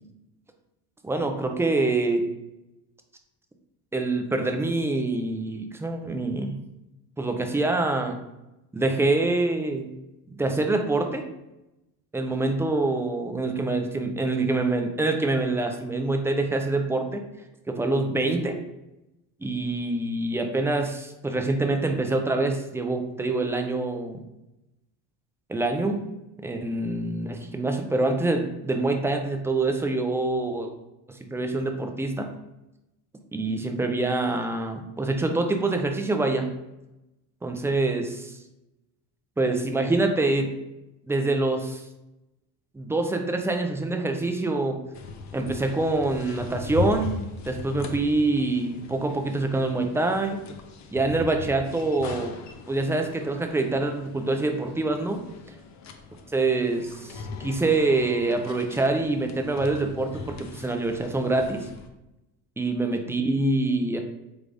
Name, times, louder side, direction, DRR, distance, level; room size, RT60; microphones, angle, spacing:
voice 1, 1.0-2.2 3.9-6.6 7.2-8.2 8.7-9.9 10.3-11.3 12.1-17.2 17.7-18.6 19.4-24.2 25.5-26.1 26.4-30.7 31.1-32.3 33.3-36.5 37.4-38.3 39.4-40.5 41.0-41.8 42.7-44.8 45.3-50.4 50.9-52.4 52.7-55.2 56.3-61.7 62.6-64.0, right 2 dB, 5° right, 4 dB, 0.3 m, -25 dB
sound 1, 44.9-61.9, left 4 dB, 45° left, 0.6 m, -39 dB
3.8 x 3.5 x 3.3 m, 0.93 s
cardioid pair, 115°, 41 cm